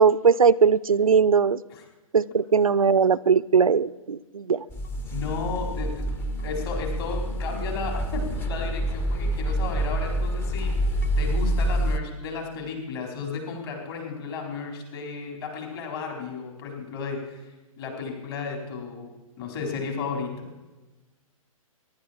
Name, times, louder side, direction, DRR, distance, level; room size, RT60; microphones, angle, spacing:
voice 1, 0.0-1.6 2.1-4.6, right 6 dB, 75° right, 0.5 m, -20 dB
sound 1, 4.7-12.0, right 1 dB, 10° left, 0.7 m, -27 dB
voice 2, 5.1-10.7 11.2-17.4 17.8-19.1 19.4-20.5, left 4 dB, 45° left, 4.4 m, -33 dB
23.5 x 11.5 x 4.4 m
figure-of-eight pair, 120°, 18 cm